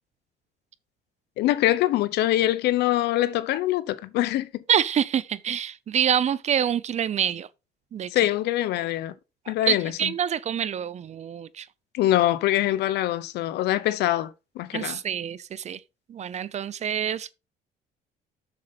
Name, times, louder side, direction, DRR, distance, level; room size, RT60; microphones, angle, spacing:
voice 1, 1.4-4.6 8.1-9.1 9.5-10.1 11.9-15.0, left 14 dB, 80° left, 0.8 m, -24 dB
voice 2, 4.7-7.5 7.9-8.1 9.5-11.7 14.7-15.8 16.1-17.3, right 9 dB, 40° right, 0.6 m, -26 dB
7.3 x 6.7 x 4.0 m
cardioid pair, 110°, 17 cm